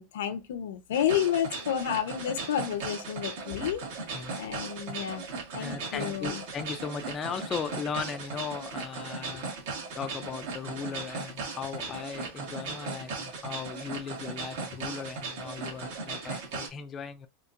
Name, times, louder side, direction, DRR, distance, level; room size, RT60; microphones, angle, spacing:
voice 1, 0.0-3.8 4.4-5.3 5.5-6.4 15.6-15.8, left 10 dB, 85° left, 0.8 m, -30 dB
sound 1, 0.9-16.7, right 4 dB, 65° right, 1.8 m, -37 dB
voice 2, 5.6-9.5 10.0-17.3, left 6 dB, 20° left, 0.4 m, -37 dB
4.3 x 2.5 x 2.5 m
supercardioid pair, 150°, 0 cm